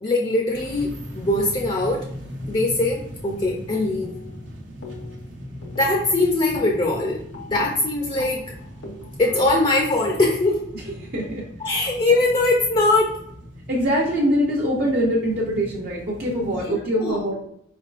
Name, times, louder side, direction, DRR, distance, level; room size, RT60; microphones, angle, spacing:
voice 1, 0.0-2.0 2.5-4.1 5.8-7.2 7.5-8.4 9.2-10.6 11.6-13.2 16.5-16.6 17.0-17.2, left 2 dB, 30° left, 0 dB, 0.5 m, -21 dB
sound 1, 0.5-16.6, equal, 80° right, 0.9 m, -39 dB
sound 2, 4.0-4.5 4.8-5.3 5.6-11.4, left 3 dB, 90° left, 0.9 m, -41 dB
voice 2, 10.7-11.4 13.7-17.3, equal, 55° right, -4 dB, 0.7 m, -23 dB
4.6 x 3.4 x 2.4 m, 0.73 s
head